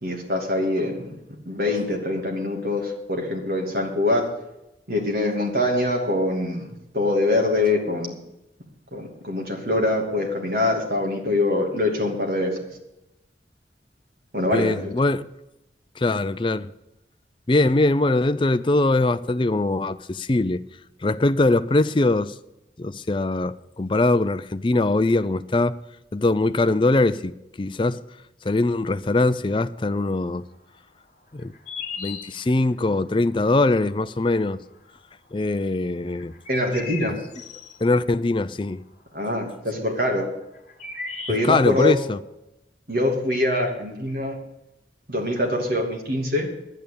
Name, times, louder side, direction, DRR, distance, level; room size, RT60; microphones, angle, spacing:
voice 1, 0.0-1.1 1.5-4.3 4.9-8.2 8.9-12.6 14.3-14.9 36.5-37.2 39.1-40.3 41.3-42.0 42.9-44.4 45.1-46.5, left 2 dB, 60° right, 2.8 m, -24 dB
voice 2, 14.5-15.2 16.0-16.7 17.5-20.6 21.0-22.4 22.8-25.8 26.1-28.0 28.4-30.4 31.3-31.5 32.0-34.6 35.3-36.3 37.8-38.8 41.4-42.2, left 2 dB, 30° left, 0.4 m, -22 dB
sound 1, 31.4-32.7 34.7-34.8 36.1-37.8 40.2-40.3 40.5-41.8, left 4 dB, 45° left, 1.8 m, -36 dB
10.5 x 9.3 x 8.4 m
head